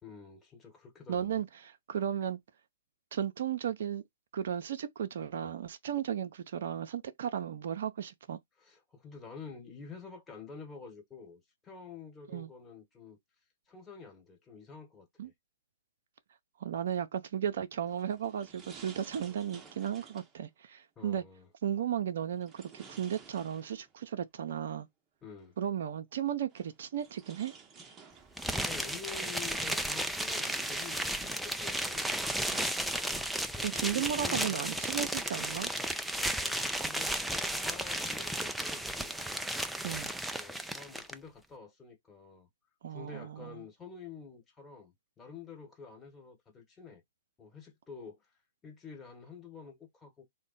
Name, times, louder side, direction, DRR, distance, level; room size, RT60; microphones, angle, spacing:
voice 1, 0.0-1.4 8.6-13.2 13.7-15.3 19.2-19.4 21.0-21.5 25.2-25.6 28.6-32.5 33.5-34.6 36.2-37.2 37.5-39.2 40.3-42.5 42.9-47.0 47.4-48.3 48.6-50.2, left 5 dB, 15° left, 1.3 m, -49 dB
voice 2, 1.1-2.4 3.1-4.0 4.3-8.4 12.3-12.5 15.2-15.3 16.6-21.2 21.6-24.9 25.6-27.5 33.6-35.7 39.8-40.1 42.8-43.6, right 9 dB, 60° right, 0.5 m, -35 dB
sound 1, 17.9-20.4 22.4-24.1 25.4-25.5 26.5-28.6 29.2-29.6 30.0-31.5 32.0-33.4, right 5 dB, 20° right, 0.8 m, -53 dB
sound 2, 28.4-41.1, right 1 dB, ahead, 0.4 m, -34 dB
3.5 x 2.1 x 4.0 m
hypercardioid pair, 125°, 0 cm